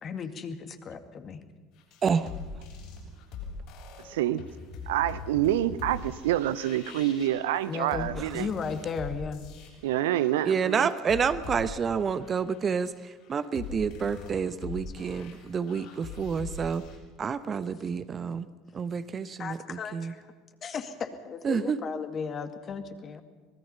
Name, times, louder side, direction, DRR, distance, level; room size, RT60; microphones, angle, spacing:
voice 1, 0.0-1.4 7.7-9.4 19.4-20.2 20.6-20.9 21.3-23.2, left 5 dB, 40° left, 8 dB, 2.1 m, -35 dB
sound 1, 1.8-17.0, left 4 dB, 60° left, 7.5 m, -42 dB
voice 2, 2.0-2.3 8.2-8.4 10.4-16.8 17.2-18.5 18.7-20.1 21.4-21.8, right 6 dB, 35° right, 13 dB, 1.0 m, -29 dB
voice 3, 4.1-4.4 4.9-8.5 9.8-10.9, right 13 dB, 70° right, 15 dB, 0.7 m, -27 dB
24.5 x 20.0 x 5.7 m, 1.5 s
figure-of-eight pair, 70°, 0 cm